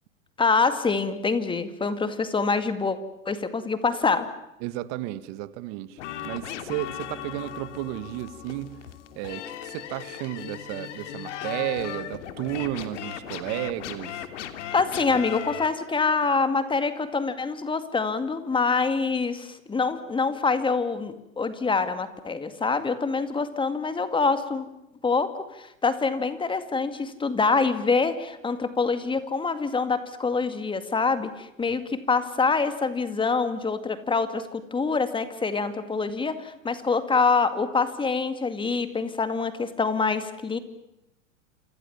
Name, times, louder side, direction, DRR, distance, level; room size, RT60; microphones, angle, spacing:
voice 1, 0.4-3.0 3.3-4.3 14.7-24.7 25.0-25.3 25.5-40.6, left 4 dB, 10° left, 11 dB, 2.2 m, -25 dB
voice 2, 4.6-8.9 9.2-14.2, right 15 dB, 45° right, 14 dB, 1.8 m, -33 dB
sound 1, 6.0-15.7, left 10 dB, 60° left, 3.0 m, -37 dB
28.5 x 27.0 x 7.3 m, 0.86 s
hypercardioid pair, 110°, 40 cm